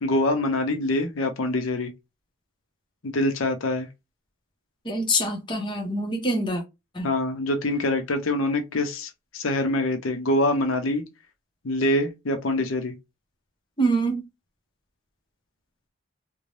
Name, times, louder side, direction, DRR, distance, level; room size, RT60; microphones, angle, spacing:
voice 1, 0.0-1.9 3.0-3.9 7.0-11.0 11.6-12.9, left 1 dB, 90° left, 0.7 m, -25 dB
voice 2, 4.8-6.6 6.9-7.1 13.8-14.2, right 1 dB, 25° left, 0.7 m, -25 dB
2.6 x 2.1 x 3.2 m
head